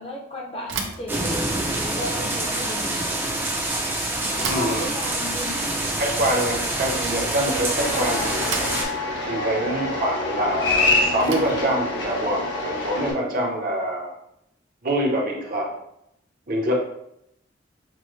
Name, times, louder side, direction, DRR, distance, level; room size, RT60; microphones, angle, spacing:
voice 1, 0.0-1.3 1.7-3.1 4.2-5.7, left 1 dB, 30° left, -1 dB, 0.7 m, -34 dB
Bicycle / Thump thud, 0.6-13.7, right 5 dB, 85° right, 0.6 m, -38 dB
sound 1, 1.1-8.8, right 1 dB, 10° right, 0.5 m, -26 dB
voice 2, 4.5-4.9 6.0-8.7 9.3-14.2 14.8-15.7 16.5-16.7, right 1 dB, 45° right, -1 dB, 0.7 m, -25 dB
sound 2, 7.8-13.1, left 2 dB, 80° left, 1.0 m, -26 dB
6.0 x 2.1 x 3.1 m, 0.78 s
head